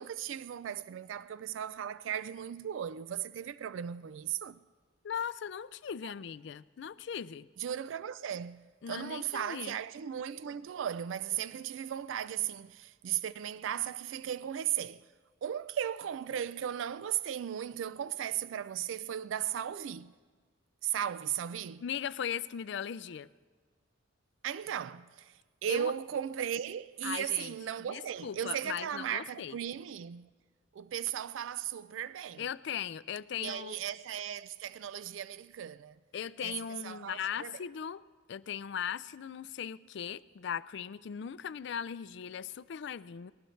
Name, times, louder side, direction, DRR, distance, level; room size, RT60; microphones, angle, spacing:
voice 1, 0.0-4.6 7.6-15.1 15.4-20.1 20.8-21.8 24.4-30.3 30.7-32.4 33.4-36.0 36.4-36.6 36.8-37.6, right 9 dB, 75° right, 0.3 m, -36 dB
voice 2, 5.0-7.5 8.8-9.8 21.8-23.3 25.7-25.9 27.0-27.5 27.9-29.6 32.4-33.8 36.1-38.0 38.3-43.3, left 8 dB, 60° left, 0.4 m, -38 dB
19.5 x 19.5 x 3.2 m
head